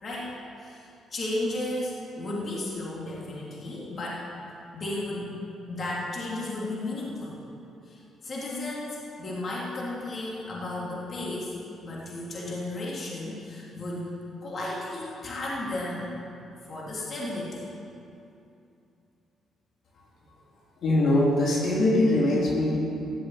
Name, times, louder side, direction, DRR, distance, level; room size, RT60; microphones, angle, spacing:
voice 1, 0.0-4.3 4.7-5.3 5.7-7.4 7.8-11.5 11.8-14.2 14.4-16.1 16.6-17.7, left 2 dB, 45° left, -5 dB, 3.2 m, -34 dB
voice 2, 20.8-22.8, left 1 dB, 65° left, -4 dB, 3.3 m, -22 dB
14.5 x 7.6 x 9.1 m, 2.7 s
cardioid pair, 90°, 0 cm